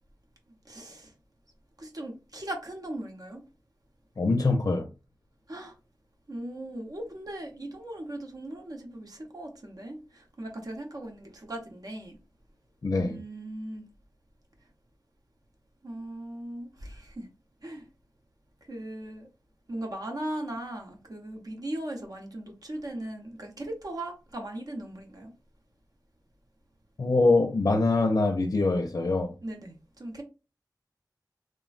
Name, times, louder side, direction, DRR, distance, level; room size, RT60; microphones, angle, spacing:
voice 1, 0.6-1.1 1.8-3.4 5.5-5.7 6.3-12.2 13.0-13.8 15.8-17.3 17.6-17.8 18.7-19.3 19.7-25.3 29.4-30.2, right 1 dB, 55° right, 0.7 m, -38 dB
voice 2, 4.2-4.9 12.8-13.2 27.0-29.3, left 3 dB, 50° left, 0.5 m, -24 dB
3.2 x 2.1 x 2.4 m
wide cardioid pair, 75°, 8 cm